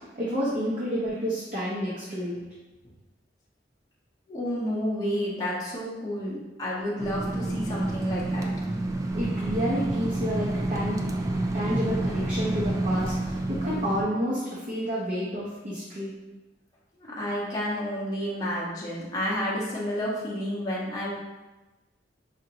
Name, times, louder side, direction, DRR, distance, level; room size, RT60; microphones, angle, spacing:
voice 1, 0.2-2.4 9.1-11.0 11.5-16.1, equal, 45° right, -7 dB, 0.8 m, -30 dB
voice 2, 4.3-8.5 17.0-21.1, equal, 20° left, -7 dB, 0.7 m, -30 dB
sound 1, 7.0-14.0, right 2 dB, 20° right, 0.3 m, -29 dB
5.0 x 2.6 x 2.8 m, 1.1 s
head